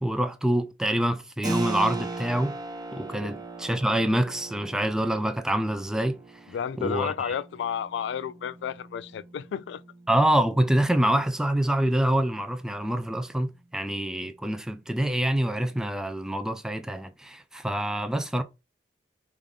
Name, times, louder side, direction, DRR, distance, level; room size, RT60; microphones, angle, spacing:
voice 1, 0.0-2.6 2.9-6.2 6.8-7.3 10.1-18.4, right 1 dB, 5° right, 0.3 m, -26 dB
Keyboard (musical), 1.4-11.8, right 3 dB, 25° right, 0.7 m, -39 dB
voice 2, 6.5-9.8, left 7 dB, 85° left, 0.3 m, -32 dB
5.2 x 2.4 x 3.6 m
head